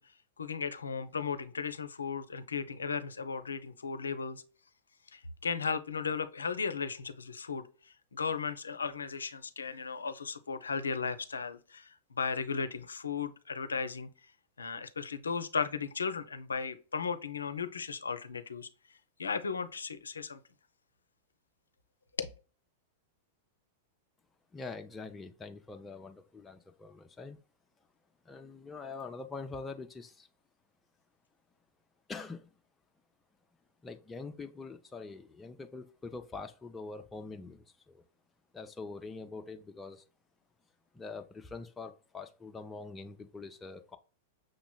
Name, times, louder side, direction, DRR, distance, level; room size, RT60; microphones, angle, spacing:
voice 1, 0.4-4.4 5.1-7.7 8.1-14.1 14.6-18.7 19.2-20.4 22.2-22.3, left 5 dB, 85° left, 0.4 m, -36 dB
voice 2, 24.5-27.4 28.3-30.3 32.1-32.5 33.8-38.0 38.5-40.0 40.9-44.0, left 3 dB, 15° left, 0.4 m, -44 dB
6.2 x 2.9 x 2.2 m
hypercardioid pair, 100°, 0 cm